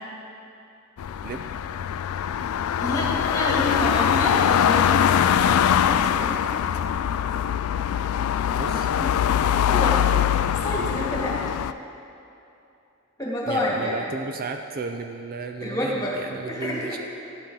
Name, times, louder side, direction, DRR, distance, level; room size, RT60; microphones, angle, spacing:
sound 1, 1.0-11.7, left 9 dB, 85° left, 0.3 m, -22 dB
voice 1, 2.8-5.3 5.9-6.4 9.0-9.1 9.5-10.0 10.6-11.4 13.2-14.0 15.6-16.2 16.5-17.0, left 1 dB, 15° left, -4 dB, 1.9 m, -28 dB
voice 2, 8.6-8.9 13.5-17.0, right 4 dB, 45° right, 6 dB, 0.4 m, -34 dB
12.0 x 8.5 x 3.9 m, 2.8 s
head